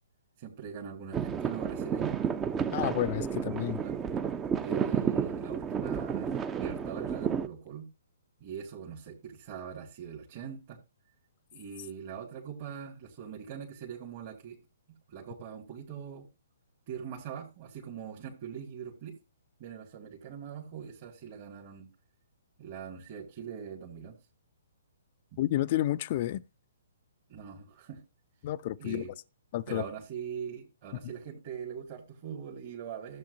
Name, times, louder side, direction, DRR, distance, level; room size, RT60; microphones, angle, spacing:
voice 1, 0.4-2.2 3.8-4.0 4.6-7.9 8.4-10.8 11.5-14.6 14.9-16.2 16.9-19.1 19.6-21.9 22.6-24.2 25.3-25.4 27.3-28.0 28.8-29.1 29.7-33.2, right 7 dB, 40° right, 2.0 m, -42 dB
sound 1, 1.1-7.5, right 7 dB, 15° right, 0.6 m, -31 dB
voice 2, 2.7-3.8 25.4-26.4 28.4-29.1 29.5-29.8, left 14 dB, 40° left, 0.4 m, -30 dB
14.0 x 7.7 x 2.6 m
figure-of-eight pair, 125°, 0 cm